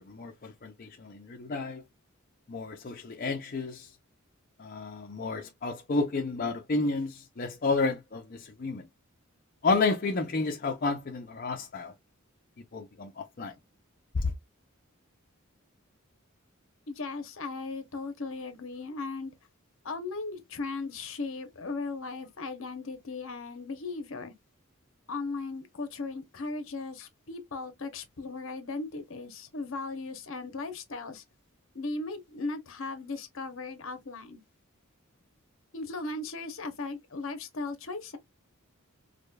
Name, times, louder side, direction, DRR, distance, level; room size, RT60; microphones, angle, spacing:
voice 1, 0.0-1.8 2.5-3.9 4.6-8.8 9.6-11.9 12.7-13.5 14.1-14.2, left 3 dB, 40° left, 0.5 m, -31 dB
voice 2, 16.9-19.3 19.8-24.3 25.1-31.2 31.7-34.4 35.7-38.2, left 3 dB, 65° left, 0.8 m, -37 dB
4.9 x 2.2 x 2.3 m
head